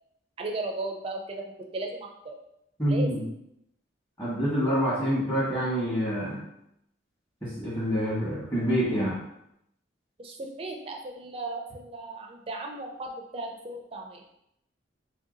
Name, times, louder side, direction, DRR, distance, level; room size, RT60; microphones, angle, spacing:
voice 1, 0.4-1.4 1.7-2.3 2.9-3.1 10.2-14.2, right 2 dB, 30° right, 1 dB, 0.4 m, -36 dB
voice 2, 2.8-3.2 4.2-6.4 7.4-9.2, equal, 20° left, -10 dB, 1.1 m, -26 dB
3.3 x 2.7 x 3.7 m, 0.78 s
head